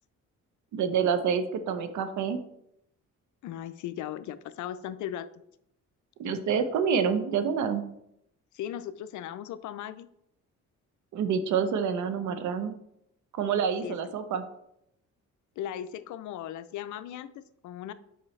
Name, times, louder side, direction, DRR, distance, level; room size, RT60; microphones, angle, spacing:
voice 1, 0.7-2.4 6.2-7.8 11.1-12.7 13.3-14.4, right 6 dB, 70° right, 10 dB, 0.8 m, -27 dB
voice 2, 3.4-5.3 8.5-10.1 13.8-14.0 15.6-17.9, left 10 dB, 75° left, 14 dB, 0.5 m, -37 dB
7.1 x 5.3 x 3.2 m, 0.78 s
cardioid pair, 90°, 30 cm